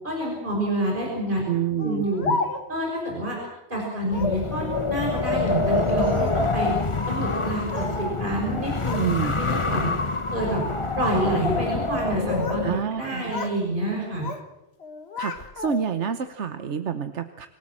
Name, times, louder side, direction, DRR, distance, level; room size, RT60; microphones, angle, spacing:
voice 1, 0.0-1.4 1.8-2.3 2.7-3.4 3.7-6.7 7.1-9.9 10.3-10.6 11.0-12.7 13.0-14.3, right 1 dB, 50° right, -2 dB, 6.2 m, -28 dB
voice 2, 1.5-2.1 9.0-9.3 12.6-13.3 15.2-17.5, right 8 dB, 85° right, 9 dB, 1.3 m, -27 dB
Speech, 1.8-2.9 4.0-4.5 5.5-6.5 7.2-8.0 8.3-9.1 9.5-9.8 10.5-10.8 12.0-12.7 13.0-13.6 13.9-14.5 14.8-16.0, left 4 dB, 65° left, 1.9 m, -33 dB
Wind, 4.1-12.8, left 3 dB, 30° left, 1.2 m, -26 dB
27.0 x 18.0 x 7.5 m, 0.99 s
omnidirectional pair, 1.1 m